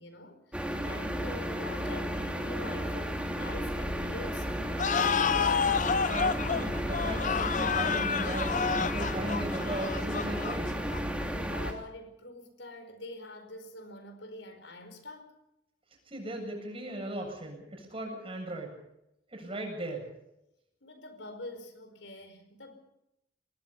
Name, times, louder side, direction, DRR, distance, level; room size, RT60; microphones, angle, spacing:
voice 1, 0.0-5.2 11.5-15.4 20.8-22.8, left 2 dB, 85° left, 9 dB, 4.8 m, -45 dB
sound 1, 0.5-11.7, equal, 5° right, 2.9 m, -33 dB
sound 2, 4.8-11.2, left 6 dB, 45° left, 0.7 m, -29 dB
voice 2, 6.1-10.8 16.1-18.7 19.3-20.1, right 1 dB, 30° right, 3 dB, 7.6 m, -37 dB
25.5 x 19.5 x 5.6 m, 0.85 s
head